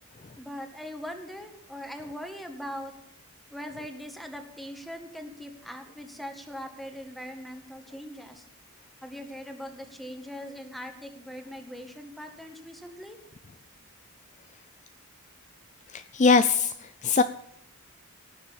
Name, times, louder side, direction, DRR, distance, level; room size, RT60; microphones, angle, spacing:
voice 1, 0.4-2.9 3.5-8.5 9.0-13.2, equal, ahead, 5 dB, 1.9 m, -41 dB
voice 2, 15.9-17.2, left 4 dB, 30° left, 11 dB, 0.5 m, -22 dB
18.0 x 7.3 x 7.2 m, 0.78 s
head